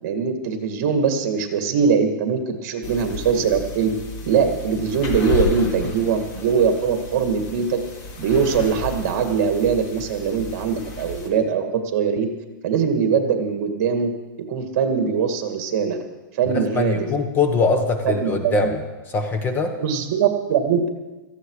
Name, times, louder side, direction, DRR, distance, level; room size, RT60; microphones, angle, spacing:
voice 1, 0.0-3.9 4.2-7.8 8.2-12.3 12.6-14.1 14.5-16.0 16.3-17.1 18.0-18.7 19.8-20.9, right 6 dB, 45° right, 6 dB, 2.2 m, -21 dB
sound 1, 2.8-11.3, left 4 dB, 35° left, 2.4 m, -32 dB
voice 2, 16.5-18.8 19.1-19.7, left 3 dB, 20° left, 5 dB, 1.3 m, -22 dB
18.0 x 14.5 x 4.9 m, 1.2 s
hypercardioid pair, 155°, 11 cm